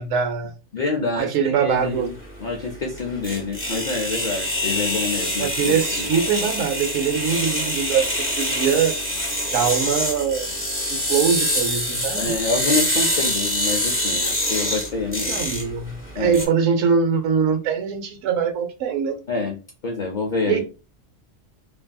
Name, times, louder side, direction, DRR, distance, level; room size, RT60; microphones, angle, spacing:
voice 1, 0.0-0.5 1.2-2.1 5.4-9.0 9.5-10.6 10.9-12.3 15.3-19.2 20.5-20.6, right 6 dB, 80° right, 1.0 m, -22 dB
voice 2, 0.7-2.1 2.4-6.1 12.1-15.4 16.1-16.4 19.3-20.6, left 3 dB, 60° left, 0.5 m, -27 dB
sound 1, 1.7-16.4, left 1 dB, 10° left, 0.7 m, -25 dB
2.6 x 2.6 x 2.2 m
omnidirectional pair, 1.3 m